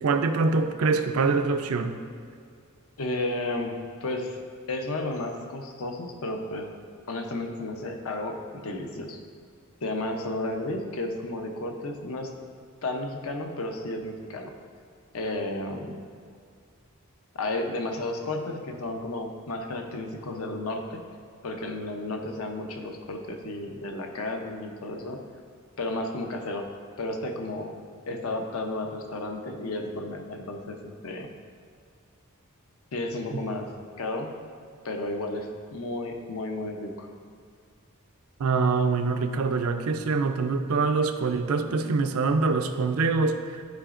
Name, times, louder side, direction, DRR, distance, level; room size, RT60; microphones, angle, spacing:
voice 1, 0.0-1.9 33.3-33.4 38.4-43.6, right 4 dB, 70° right, 8 dB, 0.5 m, -24 dB
voice 2, 3.0-4.4 4.7-6.7 7.1-9.2 9.8-12.3 12.8-14.5 15.1-16.0 17.4-21.0 21.4-25.2 25.8-26.7 27.0-27.8 28.1-31.3 32.9-33.7 34.0-34.3 34.8-37.1, left 2 dB, 70° left, 4 dB, 0.7 m, -32 dB
11.5 x 4.9 x 2.5 m, 2.2 s
head